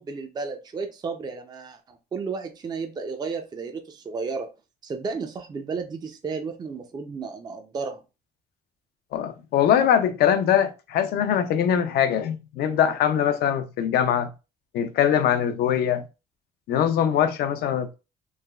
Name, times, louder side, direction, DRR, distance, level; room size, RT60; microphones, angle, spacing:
voice 1, 0.0-4.5 4.8-8.0, right 4 dB, 25° right, 0.4 m, -33 dB
voice 2, 9.1-14.3 14.7-16.0 16.7-17.9, left 9 dB, 70° left, 0.4 m, -22 dB
3.2 x 2.1 x 2.2 m
cardioid pair, 110°, 17 cm